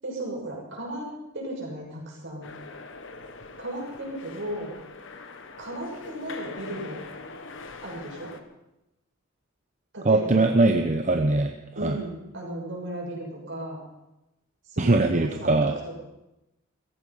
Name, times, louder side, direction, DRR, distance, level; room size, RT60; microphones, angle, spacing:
voice 1, 0.0-2.5 3.6-4.7 5.6-7.0 7.8-8.3 9.9-10.5 11.7-13.8 14.7-15.7, right 1 dB, 60° right, -2 dB, 6.3 m, -35 dB
sound 1, 2.4-8.4, left 3 dB, 65° left, 1.3 m, -43 dB
voice 2, 10.0-11.5 11.8-12.0 14.8-15.7, right 2 dB, 35° right, 5 dB, 0.8 m, -21 dB
16.0 x 15.0 x 5.6 m, 0.93 s
head